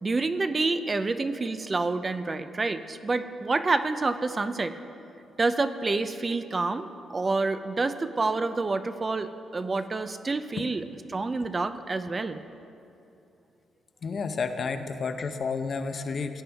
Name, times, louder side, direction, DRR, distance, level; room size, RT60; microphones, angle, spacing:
voice 1, 0.0-4.7 5.4-10.8 11.1-12.4, right 3 dB, 30° right, 10 dB, 0.4 m, -28 dB
voice 2, 14.0-16.4, left 4 dB, 50° left, 8 dB, 0.7 m, -31 dB
17.0 x 8.9 x 3.5 m, 2.7 s
cardioid pair, 95°, 0 cm